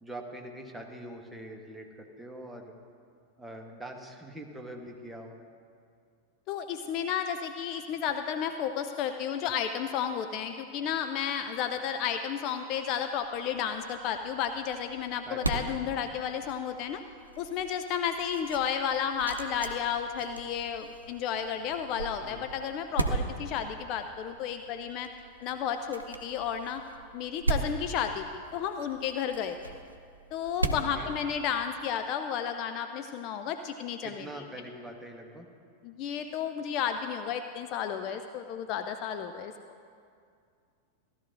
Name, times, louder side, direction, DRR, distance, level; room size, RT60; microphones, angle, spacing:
voice 1, 0.0-2.7 3.4-5.4 15.2-15.9 22.2-22.5 30.9-31.1 34.0-35.5, right 1 dB, 5° right, 1 dB, 1.2 m, -43 dB
voice 2, 6.5-17.0 17.4-25.1 25.4-26.8 27.1-29.7 30.3-34.2 35.8-39.5, left 8 dB, 40° left, 7 dB, 0.4 m, -32 dB
sound 1, 13.1-31.9, right 3 dB, 85° right, 0.6 m, -38 dB
15.5 x 12.0 x 2.6 m, 2.3 s
figure-of-eight pair, 90°, 0 cm